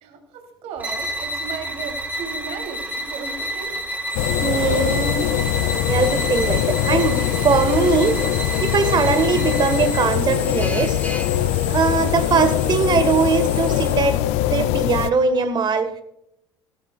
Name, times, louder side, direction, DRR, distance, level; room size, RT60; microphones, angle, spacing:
voice 1, 0.0-3.7 15.3-15.4, right 5 dB, 55° right, 3 dB, 3.1 m, -35 dB
sound 1, 0.8-10.1, right 1 dB, 15° right, 3.9 m, -30 dB
sound 2, 4.1-15.1, left 13 dB, 60° left, 0.5 m, -22 dB
Drill, 4.1-13.9, left 2 dB, 10° left, 2.1 m, -34 dB
voice 2, 4.4-5.3 5.7-8.2 8.6-11.0 11.7-14.2 14.5-15.9, right 5 dB, 35° right, 10 dB, 1.5 m, -21 dB
17.5 x 12.0 x 2.4 m, 0.79 s
figure-of-eight pair, 65°, 13 cm